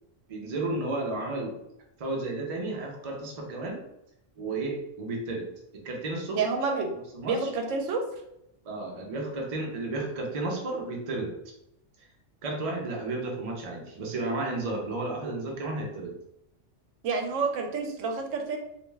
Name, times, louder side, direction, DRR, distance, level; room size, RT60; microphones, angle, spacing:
voice 1, 0.3-1.6 2.0-3.8 4.4-5.5 5.7-6.4 7.1-7.5 8.6-11.3 12.4-16.1, right 2 dB, 45° right, 0 dB, 0.4 m, -32 dB
voice 2, 6.3-6.9 7.3-8.0 17.0-18.6, right 4 dB, 80° right, 3 dB, 0.9 m, -28 dB
2.5 x 2.2 x 3.1 m, 0.81 s
omnidirectional pair, 1.3 m